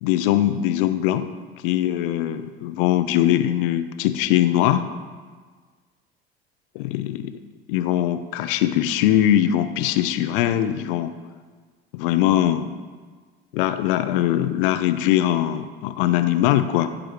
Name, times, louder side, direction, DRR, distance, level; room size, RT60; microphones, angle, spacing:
voice 1, 0.0-1.3 1.6-4.8 6.7-7.3 7.7-11.1 11.9-12.7 13.5-16.9, left 12 dB, 60° left, 10 dB, 0.8 m, -21 dB
14.0 x 5.0 x 6.2 m, 1.5 s
figure-of-eight pair, 70°, 31 cm